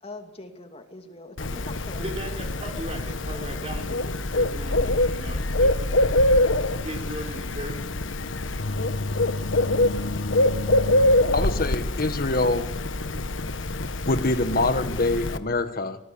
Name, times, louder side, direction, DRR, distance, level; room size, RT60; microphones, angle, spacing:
voice 1, 0.0-2.7 3.3-3.6, left 2 dB, 30° left, 5 dB, 2.6 m, -43 dB
Bird, 1.4-15.4, left 1 dB, 85° left, 1.4 m, -24 dB
voice 2, 2.0-6.4 6.8-7.9, right 1 dB, 30° right, 2 dB, 4.9 m, -38 dB
voice 3, 11.3-12.7 14.1-16.0, left 2 dB, 50° left, 9 dB, 1.4 m, -24 dB
25.5 x 19.5 x 8.7 m, 0.87 s
head